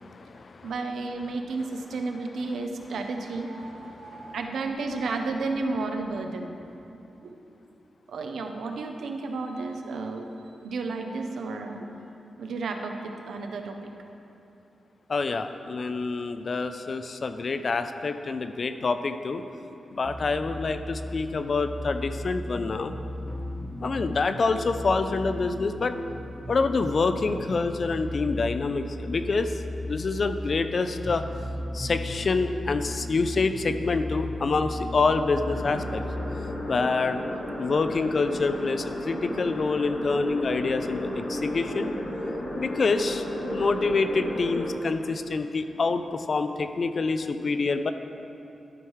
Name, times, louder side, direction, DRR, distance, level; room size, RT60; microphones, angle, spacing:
voice 1, 0.0-0.7 4.1-4.3 15.1-19.4 19.9-22.9 23.8-25.9 26.5-29.5 29.9-31.2 31.7-36.0 36.7-37.2 37.6-41.9 42.6-43.2 43.5-47.9, left 4 dB, 40° left, 9 dB, 0.4 m, -27 dB
voice 2, 0.6-6.5 7.2-7.4 8.1-10.3 10.6-11.9 12.4-13.8, right 3 dB, 90° right, 4 dB, 0.7 m, -32 dB
sound 1, 20.0-36.2, equal, 5° right, 0.6 m, -36 dB
sound 2, 35.5-44.7, left 1 dB, 60° left, 1.4 m, -33 dB
12.0 x 4.8 x 4.7 m, 2.7 s
wide cardioid pair, 155°, 0 cm